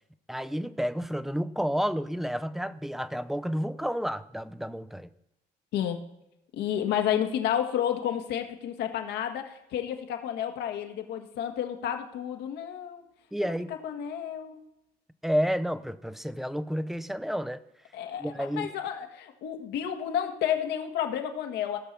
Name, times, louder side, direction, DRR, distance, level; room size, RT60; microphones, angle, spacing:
voice 1, 0.3-5.1 13.3-13.7 15.2-17.6 18.2-18.7, equal, ahead, 12 dB, 0.6 m, -30 dB
voice 2, 5.7-6.0 6.5-13.0 13.4-14.6 17.9-21.8, left 10 dB, 80° left, 5 dB, 1.7 m, -31 dB
16.5 x 5.7 x 6.8 m, 0.88 s
cardioid pair, 110°, 17 cm